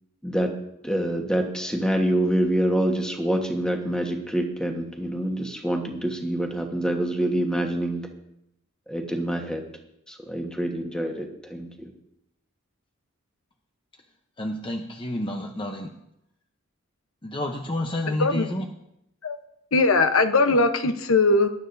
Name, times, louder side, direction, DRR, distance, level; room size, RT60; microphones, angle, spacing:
voice 1, 0.2-0.6 0.8-8.1 8.9-9.6 10.1-11.9, right 1 dB, 5° left, 2 dB, 1.3 m, -26 dB
voice 2, 14.4-15.9 17.2-18.7, left 1 dB, 25° left, 3 dB, 0.7 m, -29 dB
voice 3, 19.7-21.6, left 3 dB, 75° left, 8 dB, 0.9 m, -20 dB
19.0 x 11.5 x 2.6 m, 0.82 s
head